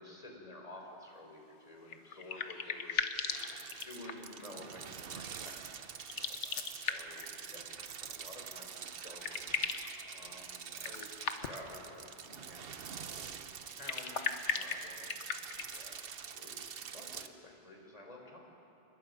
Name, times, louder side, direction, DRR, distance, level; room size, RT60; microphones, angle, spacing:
voice 1, 0.0-3.2 3.8-5.6 6.1-9.8 10.1-11.1 11.4-13.4 13.8-18.4, left 1 dB, 30° left, 0 dB, 3.9 m, -52 dB
sound 1, 1.9-4.4 6.0-7.3 8.6-8.7 9.0-9.9 10.8-11.7 13.7-15.8, left 6 dB, 75° left, 1.3 m, -37 dB
sound 2, 3.3-17.3, right 7 dB, 55° right, 1.0 m, -46 dB
28.0 x 21.0 x 5.3 m, 2.9 s
omnidirectional pair, 1.2 m